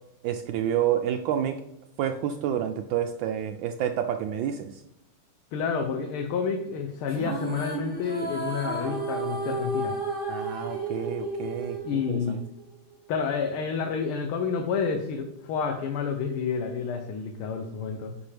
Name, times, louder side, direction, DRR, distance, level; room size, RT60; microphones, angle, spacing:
voice 1, 0.2-1.6 2.0-4.8 10.3-12.4, right 9 dB, 75° right, 6 dB, 1.2 m, -29 dB
voice 2, 5.5-9.9 11.8-12.4 13.1-18.2, left 5 dB, 80° left, 4 dB, 1.7 m, -29 dB
sound 1, 7.1-12.6, right 2 dB, 30° right, 1.2 m, -32 dB
10.0 x 5.2 x 3.3 m, 0.85 s
omnidirectional pair, 2.3 m